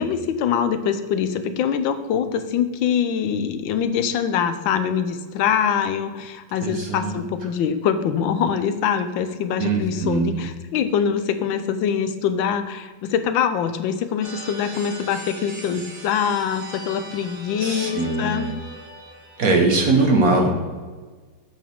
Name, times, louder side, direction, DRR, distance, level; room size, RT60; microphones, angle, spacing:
voice 1, 0.0-18.5, left 7 dB, 85° left, 10 dB, 1.4 m, -24 dB
voice 2, 6.6-7.2 9.6-10.4 17.6-18.6 19.4-20.5, right 3 dB, 50° right, 2 dB, 1.4 m, -21 dB
sound 1, 14.2-19.4, right 1 dB, 75° right, 3.1 m, -39 dB
8.4 x 6.9 x 3.6 m, 1.4 s
omnidirectional pair, 2.1 m